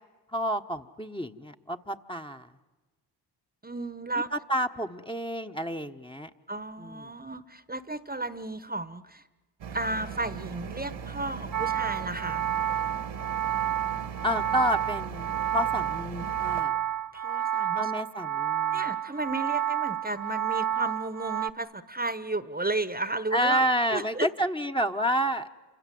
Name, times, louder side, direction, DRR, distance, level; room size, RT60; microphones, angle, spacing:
voice 1, 0.3-2.5 4.3-6.3 6.8-7.0 14.2-16.7 17.7-18.8 23.3-25.5, equal, 10° left, 5 dB, 1.2 m, -29 dB
voice 2, 3.6-4.3 6.5-9.2 9.7-12.5 17.1-17.9 18.7-23.6 23.9-24.3, right 2 dB, 20° right, 13 dB, 1.2 m, -33 dB
sound 1, 9.6-16.6, right 6 dB, 75° right, 1.8 m, -39 dB
sound 2, 11.5-21.5, right 10 dB, 45° right, 1.0 m, -30 dB
28.0 x 26.0 x 7.8 m, 1.2 s
supercardioid pair, 45°, 45 cm